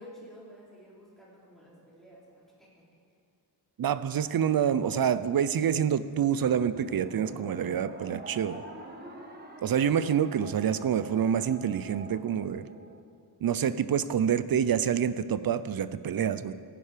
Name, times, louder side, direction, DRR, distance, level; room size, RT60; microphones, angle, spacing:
voice 1, 0.0-2.7, equal, ahead, -7 dB, 3.8 m, -51 dB
voice 2, 3.8-8.6 9.6-12.7 13.4-16.5, right 8 dB, 60° right, 14 dB, 0.5 m, -27 dB
sound 1, 6.5-13.0, right 2 dB, 25° right, 1.3 m, -45 dB
16.0 x 10.0 x 5.0 m, 2.2 s
wide cardioid pair, 140°, 41 cm